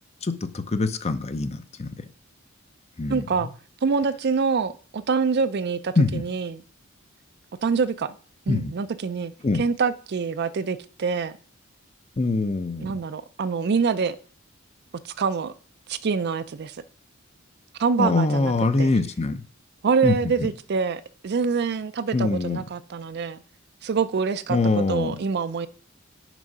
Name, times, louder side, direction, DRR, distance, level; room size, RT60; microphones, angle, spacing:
voice 1, 0.2-2.0 3.0-3.5 6.0-6.2 8.5-8.7 9.4-9.6 12.2-13.0 18.0-19.4 20.0-20.5 22.1-22.6 24.5-25.2, left 3 dB, 30° left, 11 dB, 0.6 m, -24 dB
voice 2, 3.1-3.5 3.8-6.6 7.6-8.2 8.5-9.3 9.6-11.3 12.8-14.2 15.0-15.5 15.9-16.8 17.8-18.5 18.8-18.9 19.8-23.4 23.8-24.6 24.9-25.7, right 5 dB, 55° right, 13 dB, 0.4 m, -25 dB
6.1 x 4.8 x 5.4 m, 0.42 s
head